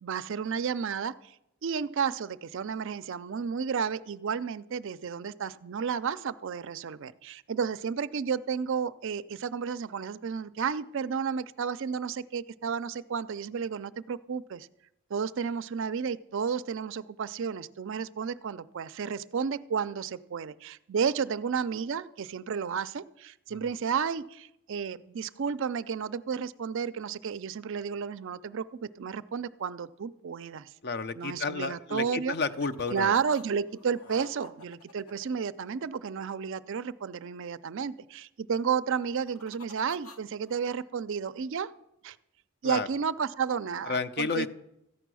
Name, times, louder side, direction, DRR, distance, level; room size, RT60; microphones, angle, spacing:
voice 1, 0.0-1.3 1.6-14.7 15.1-30.7 31.1-32.4 32.9-41.7 42.0-42.2 42.6-44.5, right 6 dB, 60° right, 14 dB, 0.4 m, -32 dB
voice 2, 30.8-33.1 42.6-42.9 43.9-44.5, left 4 dB, 45° left, 11 dB, 0.6 m, -31 dB
sound 1, 32.3-33.4 33.7-36.2 38.9-40.7, left 3 dB, 75° left, 1.0 m, -51 dB
14.0 x 9.1 x 6.2 m, 0.84 s
head